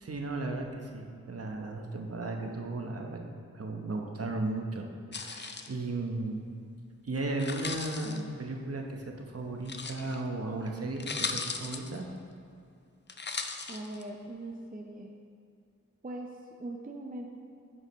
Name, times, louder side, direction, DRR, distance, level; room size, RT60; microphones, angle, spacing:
voice 1, 0.0-3.2 3.5-4.9 5.1-6.5 7.0-12.1, right 2 dB, 50° right, 2 dB, 0.9 m, -35 dB
sound 1, 5.1-5.7 7.3-8.2 9.6-10.2 10.7-10.8 11.0-12.0 13.1-14.0, left 4 dB, 35° left, 0.5 m, -37 dB
voice 2, 13.7-15.1 16.0-17.3, right 1 dB, 30° right, 1 dB, 0.6 m, -41 dB
9.4 x 6.4 x 3.1 m, 2.3 s
wide cardioid pair, 60°, 30 cm